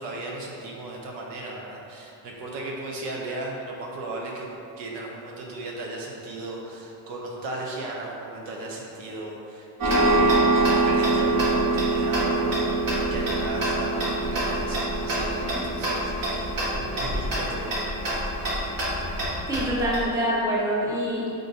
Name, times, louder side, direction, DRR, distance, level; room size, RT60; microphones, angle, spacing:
voice 1, 0.0-4.5 4.8-10.4 10.8-12.7 13.1-17.8, right 2 dB, 80° right, -2 dB, 0.8 m, -36 dB
Tick-tock, 9.8-20.0, right 2 dB, 50° right, 1.5 m, -24 dB
voice 2, 19.5-21.3, equal, 10° right, -7 dB, 0.9 m, -25 dB
3.8 x 2.6 x 3.9 m, 2.6 s
cardioid pair, 110°, 42 cm